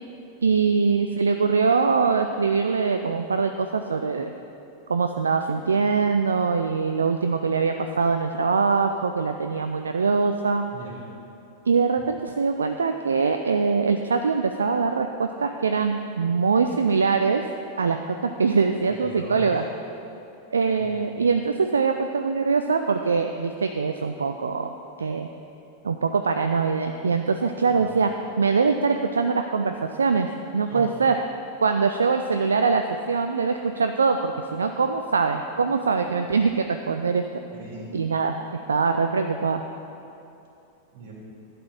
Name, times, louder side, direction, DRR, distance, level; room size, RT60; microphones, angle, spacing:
voice 1, 0.4-4.3 4.9-10.6 11.7-17.4 17.8-19.6 20.5-24.7 25.0-25.3 25.8-28.1 28.4-30.3 30.5-31.1 31.6-37.2 37.9-38.4 38.7-39.6, right 5 dB, 70° right, 6 dB, 0.3 m, -23 dB
voice 2, 10.7-11.1 18.9-19.5 20.8-20.9 27.7-28.0 30.6-30.9 37.5-38.0 40.9-41.1, right 3 dB, 50° right, -3 dB, 2.6 m, -39 dB
11.5 x 4.3 x 7.4 m, 2.8 s
figure-of-eight pair, 90°, 0 cm